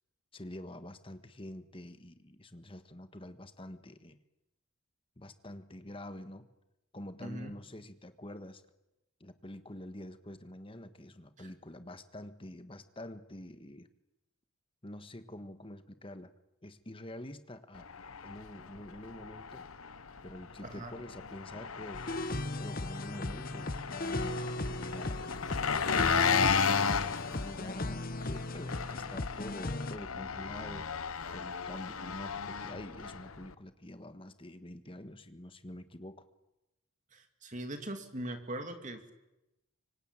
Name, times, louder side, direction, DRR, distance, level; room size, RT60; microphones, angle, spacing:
voice 1, 0.3-4.2 5.2-6.5 6.9-8.6 9.2-13.9 14.8-16.3 16.6-17.9 18.2-19.7 20.2-25.2 25.8-26.9 27.3-30.9 31.3-36.3, left 1 dB, 25° left, 10 dB, 1.5 m, -47 dB
voice 2, 7.2-7.6 11.4-11.5 20.7-20.9 37.1-39.1, right 1 dB, 35° right, 6 dB, 2.8 m, -41 dB
Engine, 17.7-33.5, left 6 dB, 80° left, 1.1 m, -35 dB
sound 1, 21.9-30.0, left 2 dB, 40° left, 1.0 m, -37 dB
25.5 x 24.0 x 9.0 m, 0.95 s
head